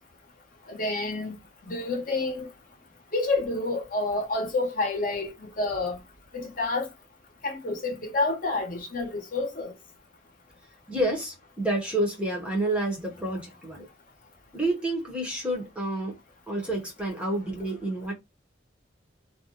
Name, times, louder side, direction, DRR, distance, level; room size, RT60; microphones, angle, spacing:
voice 1, 0.7-1.4 1.7-2.5 3.1-6.0 6.3-6.9 7.4-9.7, left 2 dB, 50° left, 0.8 m, -29 dB
voice 2, 10.9-13.9 14.5-16.2 16.5-18.1, right 1 dB, 5° right, 0.7 m, -29 dB
2.4 x 2.1 x 2.7 m
head